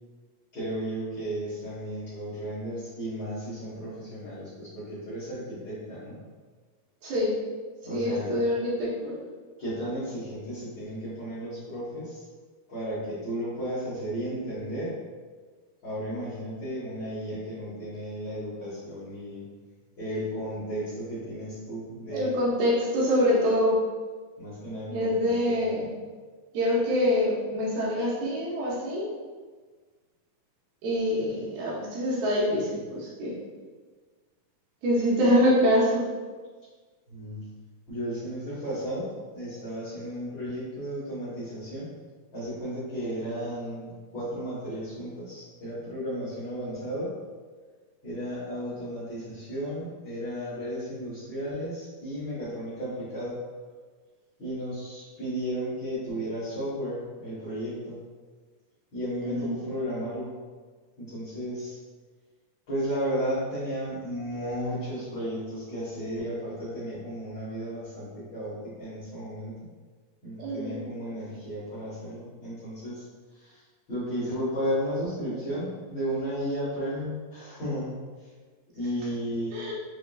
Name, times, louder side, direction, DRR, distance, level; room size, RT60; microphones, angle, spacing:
voice 1, 0.5-6.2 7.8-8.3 9.6-12.2 12.7-14.9 15.8-19.4 20.0-22.3 24.4-25.9 37.1-37.4 37.9-41.9 42.3-47.1 48.0-53.4 54.4-58.0 58.9-60.3 61.0-61.8 62.7-69.5 70.2-73.0 73.3-73.6 73.9-77.9 78.7-79.6, equal, 65° left, -13 dB, 1.1 m, -34 dB
voice 2, 7.0-7.3 7.9-9.1 22.1-23.7 24.9-25.9 26.5-29.1 30.8-33.3 34.8-36.0 59.2-59.5 70.4-70.8 79.5-79.7, equal, 85° right, -6 dB, 2.9 m, -25 dB
6.3 x 2.5 x 2.3 m, 1.4 s
omnidirectional pair, 4.1 m